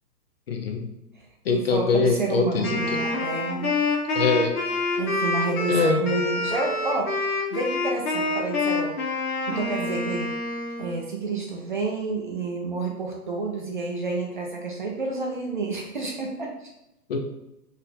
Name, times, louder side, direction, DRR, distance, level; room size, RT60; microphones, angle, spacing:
voice 1, 0.5-0.9 1.5-3.0 4.1-4.6 5.7-6.0 17.1-17.2, left 5 dB, 40° left, 3 dB, 0.5 m, -23 dB
voice 2, 1.5-3.7 5.0-9.1 9.5-10.3 10.8-16.7, right 3 dB, 35° right, 0 dB, 0.4 m, -29 dB
Wind instrument woodwind instrument, 2.6-11.0, left 2 dB, 60° left, 1.3 m, -27 dB
4.0 x 2.6 x 4.0 m, 0.89 s
hypercardioid pair, 130°, 50 cm